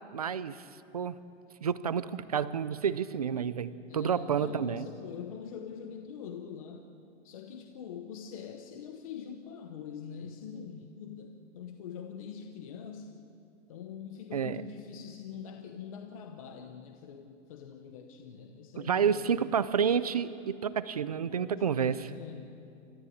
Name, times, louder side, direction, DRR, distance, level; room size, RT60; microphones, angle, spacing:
voice 1, 0.1-0.7 0.9-1.2 1.6-4.9 14.3-14.6 18.8-22.1, right 7 dB, 35° right, 15 dB, 0.4 m, -30 dB
voice 2, 3.9-6.9 7.2-13.2 13.7-19.4 21.3-22.5, left 7 dB, 30° left, 5 dB, 0.8 m, -44 dB
28.5 x 13.5 x 8.5 m, 2.6 s
hypercardioid pair, 180°, 37 cm